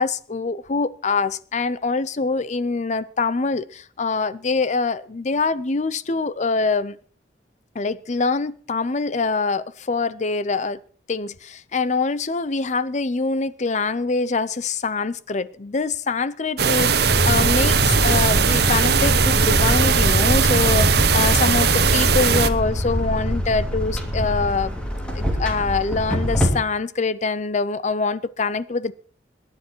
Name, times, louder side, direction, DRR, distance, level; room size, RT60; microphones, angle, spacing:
voice 1, 0.0-7.0 7.7-10.8 11.1-24.7 25.1-28.9, left 4 dB, 40° left, 0.6 m, -24 dB
sound 1, 16.6-22.5, right 6 dB, 60° right, 1.1 m, -19 dB
sound 2, 17.0-26.5, equal, 5° left, 2.9 m, -23 dB
22.0 x 9.7 x 4.5 m
head